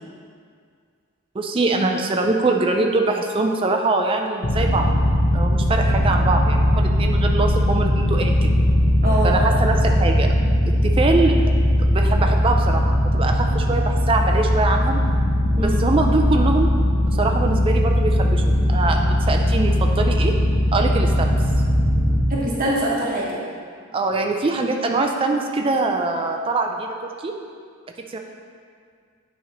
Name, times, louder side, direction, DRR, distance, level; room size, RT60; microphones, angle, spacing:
voice 1, 1.3-4.9 5.3-8.5 9.2-10.3 10.8-11.4 11.8-15.0 15.6-16.7 17.2-20.3 20.7-21.3 23.9-27.3 28.1-28.2, right 3 dB, 25° right, 2 dB, 0.3 m, -23 dB
sound 1, 4.4-22.2, equal, 55° left, 1.1 m, -19 dB
voice 2, 9.0-9.3 15.6-15.8 22.3-23.4, right 1 dB, 40° right, -5 dB, 1.0 m, -23 dB
9.0 x 3.1 x 5.0 m, 2.1 s
head